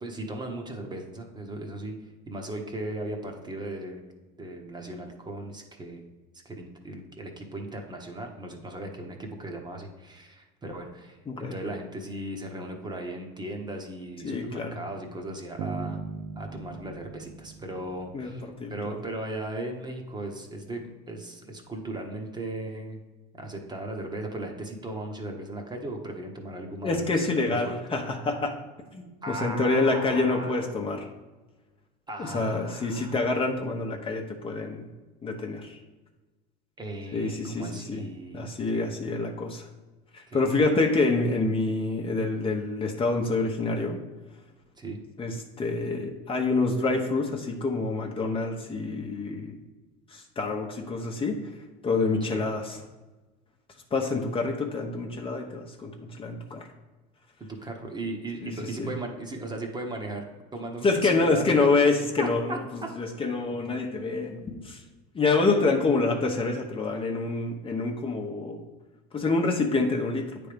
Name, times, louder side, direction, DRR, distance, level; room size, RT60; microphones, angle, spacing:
voice 1, 0.0-2.0 2.3-4.1 4.4-6.0 6.4-16.0 16.4-18.4 18.7-23.0 23.4-27.1 27.5-27.7 29.2-30.7 32.1-33.1 36.8-38.5 38.7-38.9 40.3-40.7 44.8-45.0 52.2-52.4 57.4-61.7 62.2-62.9, right 1 dB, 20° right, 2 dB, 1.1 m, -37 dB
voice 2, 14.2-14.8 18.1-19.0 26.8-28.5 28.9-31.1 32.2-34.9 35.2-35.8 37.1-38.1 38.3-39.7 40.1-44.0 45.2-49.6 50.1-51.4 51.8-52.8 53.9-56.7 58.4-58.5 58.8-58.9 60.8-64.8 65.1-68.6 69.1-70.4, left 3 dB, 25° left, 2 dB, 1.0 m, -27 dB
sound 1, 15.6-18.6, right 6 dB, 60° right, 0.5 m, -38 dB
8.9 x 3.5 x 5.1 m, 1.2 s
supercardioid pair, 100°, 21 cm